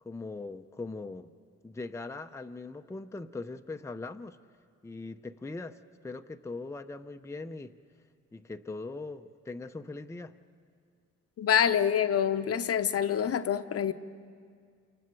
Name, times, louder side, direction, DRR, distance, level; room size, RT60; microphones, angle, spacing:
voice 1, 0.0-1.3 1.6-4.4 4.8-7.7 8.3-10.3, left 3 dB, 10° left, 6 dB, 0.6 m, -40 dB
voice 2, 11.4-13.9, left 8 dB, 50° left, 10 dB, 0.9 m, -26 dB
28.5 x 27.0 x 4.7 m, 2.1 s
cardioid pair, 90°, 30 cm